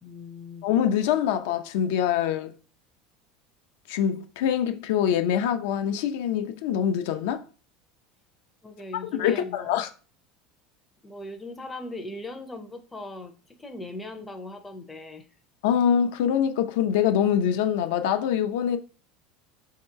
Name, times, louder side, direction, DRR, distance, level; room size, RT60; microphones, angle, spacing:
voice 1, 0.0-0.7 8.6-9.8 11.0-15.3, left 2 dB, 10° left, 0.5 m, -39 dB
voice 2, 0.6-2.5 3.9-7.4 9.2-9.9 15.6-18.8, left 9 dB, 75° left, 0.5 m, -24 dB
3.1 x 2.8 x 4.5 m
cardioid pair, 165°, 0 cm